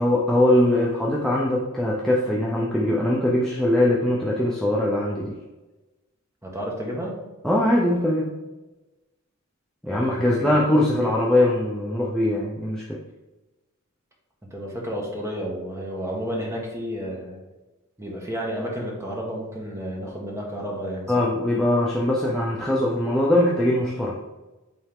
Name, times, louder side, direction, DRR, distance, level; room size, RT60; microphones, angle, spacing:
voice 1, 0.0-5.3 7.4-8.3 9.8-13.0 21.1-24.2, left 1 dB, ahead, -5 dB, 0.7 m, -21 dB
voice 2, 6.4-7.2 9.9-10.7 14.5-17.4 18.0-21.3, equal, 15° right, -2 dB, 1.4 m, -31 dB
8.7 x 3.5 x 3.7 m, 1.1 s
head